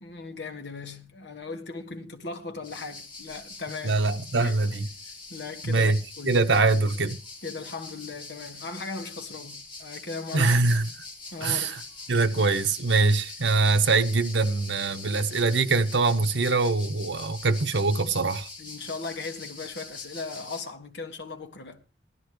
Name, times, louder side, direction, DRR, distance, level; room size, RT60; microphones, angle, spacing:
voice 1, 0.0-4.0 4.3-4.6 5.3-5.9 6.2-6.4 7.4-10.6 11.3-11.8 18.6-21.8, left 3 dB, 70° left, 1.6 m, -38 dB
sound 1, 2.6-20.6, left 3 dB, 25° left, 2.4 m, -43 dB
voice 2, 3.8-4.9 5.6-6.0 6.2-7.2 10.3-10.9 11.4-11.7 12.1-18.5, right 3 dB, 80° right, 1.1 m, -23 dB
18.0 x 12.5 x 3.2 m
head